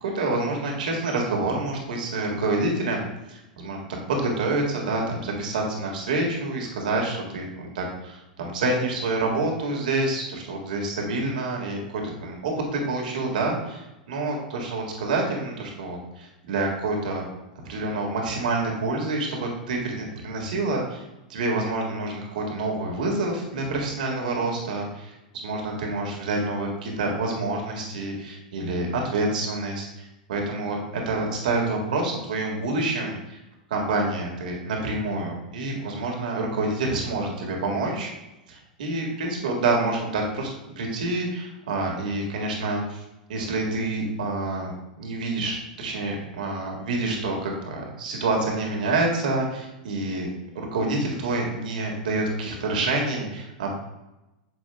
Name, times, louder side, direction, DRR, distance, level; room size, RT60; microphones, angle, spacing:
voice 1, 0.0-17.3 17.7-21.0 21.3-25.1 25.4-33.4 33.7-38.1 38.5-43.0 43.3-50.3 50.5-53.7, right 2 dB, 75° right, 0 dB, 1.8 m, -27 dB
8.5 x 6.1 x 2.3 m, 0.97 s
hypercardioid pair, 105°, 4 cm